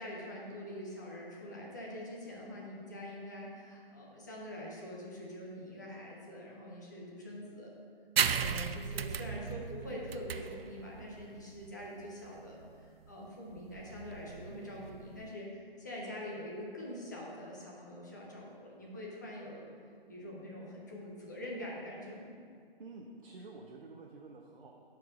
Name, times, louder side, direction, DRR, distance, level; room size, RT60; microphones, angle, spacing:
voice 1, 0.0-7.7 8.3-19.7 20.1-22.3, left 1 dB, 20° left, -4 dB, 0.8 m, -44 dB
sound 1, 8.2-15.3, right 7 dB, 90° right, 0.5 m, -36 dB
voice 2, 22.8-24.9, right 3 dB, 65° right, 1 dB, 0.8 m, -50 dB
12.0 x 4.6 x 3.8 m, 2.2 s
hypercardioid pair, 175°, 29 cm